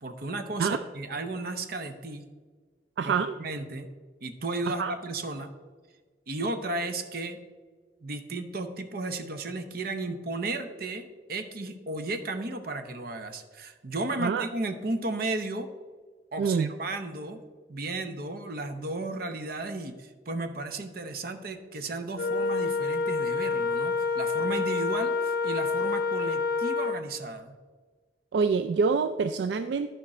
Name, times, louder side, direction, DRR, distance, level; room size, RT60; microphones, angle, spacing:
voice 1, 0.0-2.2 3.0-3.9 4.2-5.5 6.3-7.4 8.0-15.7 16.3-17.4 17.7-27.6, right 2 dB, 55° right, 8 dB, 0.8 m, -34 dB
voice 2, 3.0-3.4 4.7-4.9 14.2-14.5 16.4-16.7 28.3-29.9, right 5 dB, 75° right, 9 dB, 0.3 m, -26 dB
Wind instrument woodwind instrument, 22.2-27.0, left 4 dB, 55° left, 0.6 m, -28 dB
11.5 x 5.1 x 4.2 m, 1.5 s
head